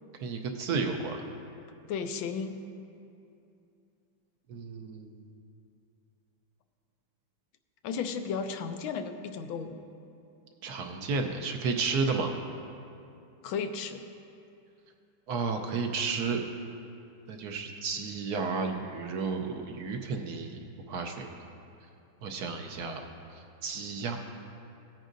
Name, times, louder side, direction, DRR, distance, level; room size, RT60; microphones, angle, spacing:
voice 1, 0.2-1.3 4.5-5.3 10.6-12.3 15.3-16.4 17.3-20.6 20.9-21.3 22.2-23.0 23.6-24.2, right 4 dB, 65° right, 4 dB, 1.1 m, -32 dB
voice 2, 1.9-2.6 7.8-9.8 13.4-14.0, left 6 dB, 85° left, 8 dB, 1.4 m, -34 dB
17.0 x 8.9 x 2.6 m, 2.6 s
omnidirectional pair, 2.2 m